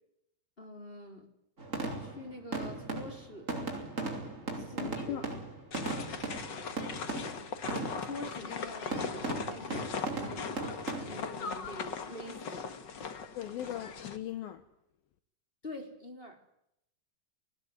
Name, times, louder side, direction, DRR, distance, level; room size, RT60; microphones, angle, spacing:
voice 1, 0.6-1.3 2.0-3.5 4.5-5.2 8.0-10.6 10.9-12.7 15.6-16.4, left 1 dB, 15° left, 3.8 m, -46 dB
sound 1, 1.6-8.2 8.9-11.1, right 2 dB, 20° right, 4.7 m, -37 dB
voice 2, 4.7-5.3 13.4-14.6, left 12 dB, 70° left, 2.8 m, -39 dB
sound 2, 5.7-14.2, left 5 dB, 55° left, 1.2 m, -39 dB
25.0 x 20.0 x 9.6 m
omnidirectional pair, 4.7 m